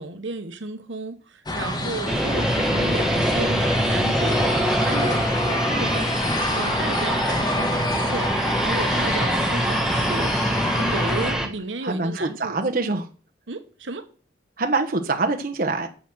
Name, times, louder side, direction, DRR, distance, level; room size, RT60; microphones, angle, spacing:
voice 1, 0.0-10.3 10.7-12.6 13.5-14.1, right 3 dB, 85° right, 1.1 m, -33 dB
sound 1, 1.5-11.3, left 1 dB, 20° left, 1.3 m, -27 dB
sound 2, 2.1-11.5, equal, 5° right, 1.2 m, -24 dB
voice 2, 11.8-13.1 14.6-15.9, right 3 dB, 50° right, 1.1 m, -25 dB
9.2 x 6.6 x 6.1 m
head